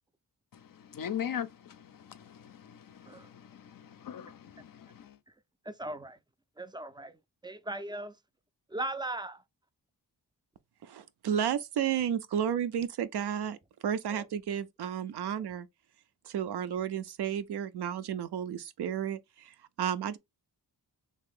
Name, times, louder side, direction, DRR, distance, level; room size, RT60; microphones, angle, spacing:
voice 1, 0.5-5.2, left 9 dB, 55° left, 0.5 m, -41 dB
voice 2, 5.6-6.2 6.6-8.2 8.7-9.4 14.1-14.3, right 2 dB, 10° right, 0.3 m, -38 dB
voice 3, 10.8-13.6 13.8-15.7 16.2-20.2, right 9 dB, 65° right, 0.5 m, -32 dB
2.8 x 2.5 x 3.5 m
cardioid pair, 45°, 42 cm